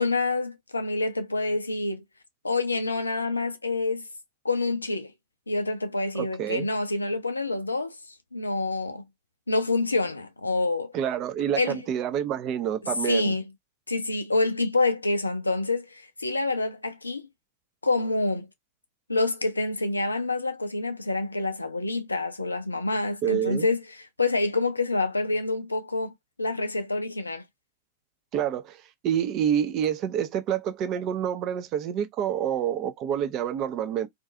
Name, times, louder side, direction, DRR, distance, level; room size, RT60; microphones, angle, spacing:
voice 1, 0.0-2.0 2.4-4.0 4.4-5.1 5.5-8.0 8.3-9.0 9.5-10.9 11.6-11.8 13.0-13.4 13.9-17.3 17.8-18.5 19.1-26.1 26.4-27.4, left 3 dB, 80° left, 0.3 m, -27 dB
voice 2, 6.1-6.7 10.9-13.3 23.2-23.7 28.3-28.8 29.0-34.1, right 9 dB, 35° right, 0.5 m, -27 dB
2.5 x 2.3 x 2.5 m
figure-of-eight pair, 90°, 0 cm